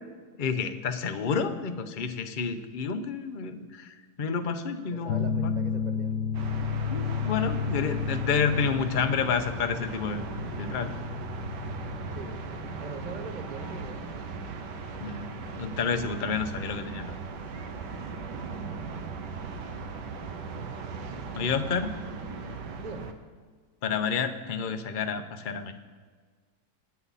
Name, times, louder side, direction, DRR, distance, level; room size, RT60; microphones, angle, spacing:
voice 1, 0.4-5.5 6.9-10.2 10.6-10.9 15.0-15.3 15.6-17.2 21.3-21.9 23.8-25.7, left 6 dB, 40° left, 7 dB, 0.8 m, -29 dB
voice 2, 4.9-6.2 12.1-14.2 18.3-19.1 22.8-23.2, right 4 dB, 35° right, 8 dB, 0.8 m, -43 dB
sound 1, 5.1-16.3, left 7 dB, 75° left, 1.4 m, -33 dB
sound 2, 6.3-23.1, right 4 dB, 85° right, 1.7 m, -38 dB
27.0 x 9.9 x 4.1 m, 1.5 s
omnidirectional pair, 1.8 m